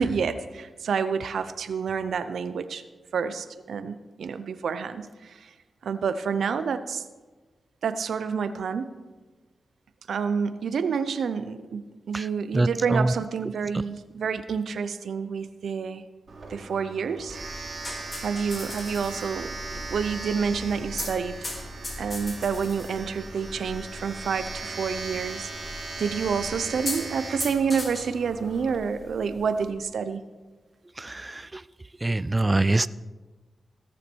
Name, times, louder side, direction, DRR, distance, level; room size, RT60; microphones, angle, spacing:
voice 1, 0.0-2.8 3.1-5.5 5.8-7.0 7.8-8.9 10.1-16.0 16.5-17.4 18.2-21.4 22.0-30.2, right 6 dB, 80° right, 12 dB, 0.6 m, -28 dB
voice 2, 12.5-13.1 31.0-31.6 32.0-32.9, right 2 dB, 25° right, 17 dB, 0.4 m, -24 dB
Domestic sounds home sounds, 16.3-28.7, right 3 dB, 60° right, 2.6 m, -39 dB
sound 1, 17.3-29.7, left 1 dB, 35° left, 2.9 m, -40 dB
18.0 x 7.1 x 4.5 m, 1.3 s
cardioid pair, 70°, 0 cm